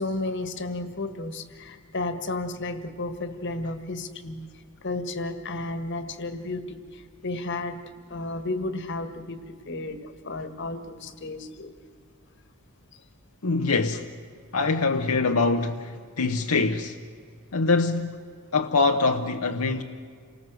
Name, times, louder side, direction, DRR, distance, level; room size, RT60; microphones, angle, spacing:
voice 1, 0.0-4.5 4.8-7.8 8.1-10.0 10.2-11.7, left 2 dB, 55° left, 1.7 m, -33 dB
voice 2, 13.4-14.1 14.5-17.0 17.5-18.2 18.5-19.8, left 3 dB, 80° left, 1.0 m, -24 dB
28.5 x 19.5 x 7.7 m
head